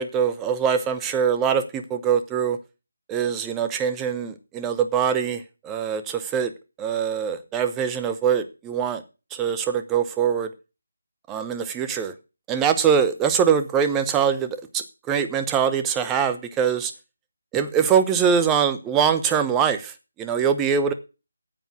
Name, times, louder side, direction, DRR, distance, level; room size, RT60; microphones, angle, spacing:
voice 1, 0.0-2.6 3.1-6.5 6.8-9.0 9.3-10.5 11.3-12.1 12.5-16.9 17.5-20.9, right 7 dB, 10° right, 9 dB, 0.8 m, -23 dB
8.8 x 8.1 x 6.2 m, 0.31 s
figure-of-eight pair, 155°, 0 cm